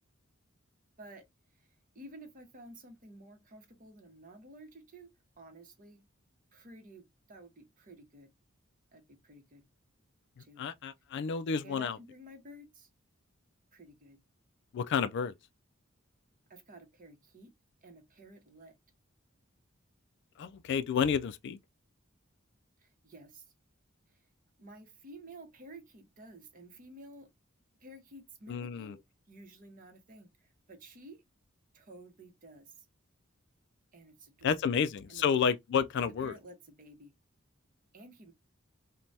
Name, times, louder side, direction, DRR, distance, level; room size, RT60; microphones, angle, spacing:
voice 1, 1.9-5.1 5.4-6.0 6.5-8.3 8.9-9.6 10.4-10.6 11.6-12.9 13.7-14.2 16.5-17.5 17.8-18.7 22.8-23.5 24.1-24.2 24.6-27.3 27.8-29.0 29.3-31.2 31.7-32.8 33.9-34.6 35.1-35.2 36.0-37.1 37.9-38.3, right 1 dB, 40° right, 0.9 m, -52 dB
voice 2, 10.6-12.0 14.7-15.3 20.4-21.6 28.5-29.0 34.4-36.3, left 6 dB, 60° left, 0.3 m, -30 dB
3.2 x 2.2 x 2.6 m
head